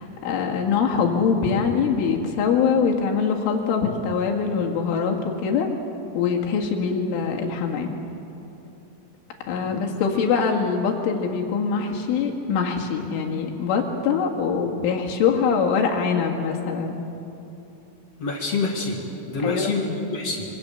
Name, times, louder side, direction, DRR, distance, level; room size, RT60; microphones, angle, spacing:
voice 1, 0.0-5.7 6.1-8.0 9.5-17.0 19.4-19.8, left 6 dB, 75° left, 1 dB, 4.3 m, -23 dB
voice 2, 9.6-10.0 18.2-19.0 19.3-20.5, left 3 dB, 50° left, 1 dB, 2.1 m, -27 dB
25.5 x 25.0 x 7.0 m, 3.0 s
omnidirectional pair, 5.9 m